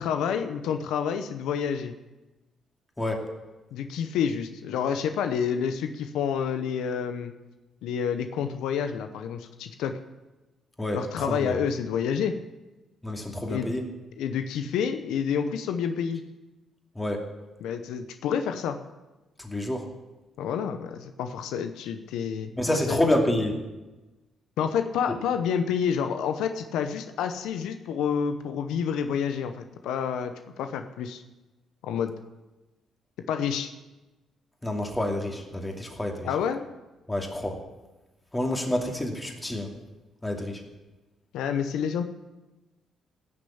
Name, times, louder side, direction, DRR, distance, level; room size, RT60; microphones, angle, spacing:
voice 1, 0.0-1.9 3.7-7.3 7.8-9.9 10.9-12.4 13.5-13.7 14.2-16.2 17.6-18.8 20.4-22.5 22.9-23.0 24.6-31.2 31.8-32.1 33.3-33.7 36.2-36.7 41.3-42.0, left 7 dB, 90° left, 8 dB, 0.8 m, -28 dB
voice 2, 10.8-11.6 13.0-13.9 16.9-17.2 19.4-19.9 22.6-23.6 34.6-36.3 37.1-37.6 38.3-39.7 40.2-40.6, left 1 dB, 15° left, 2 dB, 2.6 m, -28 dB
15.5 x 6.8 x 8.6 m, 1.1 s
cardioid pair, 90°, 0 cm